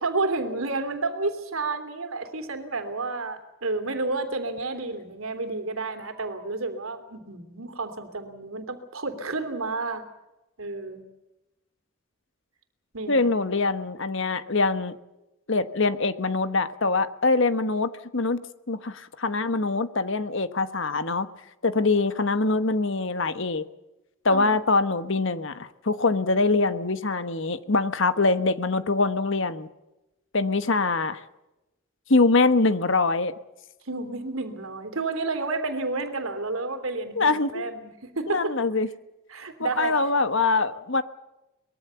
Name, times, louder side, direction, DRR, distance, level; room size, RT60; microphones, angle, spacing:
voice 1, 0.0-10.0 10.6-11.0 12.9-13.3 24.3-24.6 33.8-38.5 39.3-39.9, right 3 dB, 75° right, 8 dB, 3.1 m, -30 dB
voice 2, 13.1-15.0 15.5-21.3 21.6-23.7 24.2-29.7 30.3-31.2 32.1-33.3 37.1-37.6 38.3-38.9 39.6-41.0, left 3 dB, 60° left, 12 dB, 1.3 m, -24 dB
23.5 x 21.5 x 7.0 m, 0.96 s
head